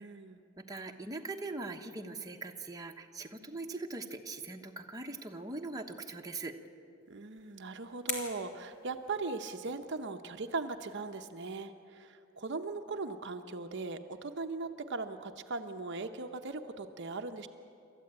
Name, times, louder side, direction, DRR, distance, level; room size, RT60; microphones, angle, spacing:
voice 1, 0.0-0.4 7.1-17.5, right 3 dB, 55° right, 6 dB, 0.9 m, -39 dB
voice 2, 0.6-6.5, right 3 dB, 15° right, 2 dB, 1.2 m, -41 dB
sound 1, 7.0-9.7, left 3 dB, 55° left, 3.3 m, -44 dB
27.5 x 13.5 x 8.8 m, 2.6 s
head